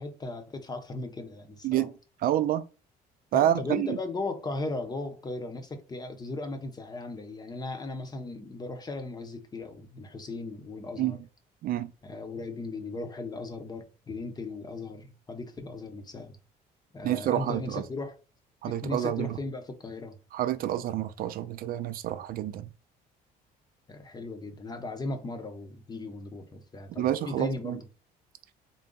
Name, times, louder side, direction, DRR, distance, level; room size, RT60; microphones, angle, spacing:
voice 1, 0.0-1.9 3.3-11.2 12.0-16.4 16.9-18.2 18.7-20.2 23.9-27.8, left 2 dB, 25° left, 0.8 m, -37 dB
voice 2, 2.2-2.6 3.3-4.0 11.0-11.1 11.6-11.9 17.0-17.8 18.6-19.3 20.3-22.7 27.0-27.8, right 12 dB, 60° right, 0.4 m, -28 dB
3.8 x 2.2 x 3.8 m
cardioid pair, 110°, 17 cm